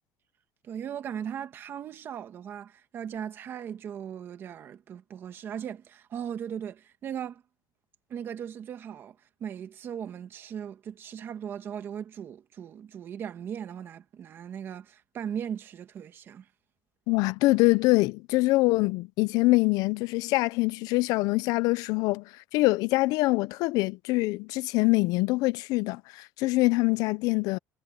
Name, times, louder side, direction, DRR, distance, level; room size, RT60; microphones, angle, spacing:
voice 1, 0.6-7.4 8.1-16.5, right 8 dB, 30° right, 1.6 m, -38 dB
voice 2, 17.1-22.2 22.5-27.6, left 21 dB, 60° left, 0.4 m, -24 dB
cardioid pair, 180°, 7 cm